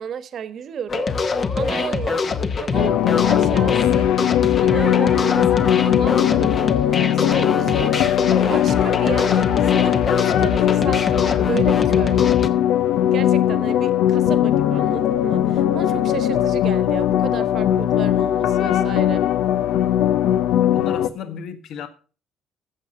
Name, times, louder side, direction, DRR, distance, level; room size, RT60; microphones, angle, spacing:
voice 1, 0.0-4.1 4.6-7.9 8.4-12.2 13.1-19.2, right 8 dB, 55° right, 1.2 m, -33 dB
sound 1, 0.9-12.5, left 4 dB, 35° left, 1.0 m, -24 dB
sound 2, 2.7-21.1, left 11 dB, 85° left, 0.7 m, -19 dB
voice 2, 20.6-21.9, left 7 dB, 70° left, 1.5 m, -33 dB
14.5 x 6.8 x 5.4 m
cardioid pair, 120°, 0 cm